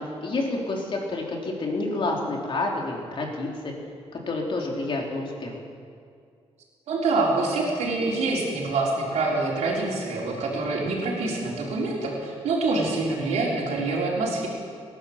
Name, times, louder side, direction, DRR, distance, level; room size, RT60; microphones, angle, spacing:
voice 1, 0.0-3.7 4.1-5.6, left 2 dB, 50° left, -1 dB, 3.3 m, -29 dB
voice 2, 6.9-14.5, right 3 dB, 90° right, -3 dB, 3.9 m, -26 dB
19.0 x 11.0 x 7.1 m, 2.3 s
cardioid pair, 105°, 11 cm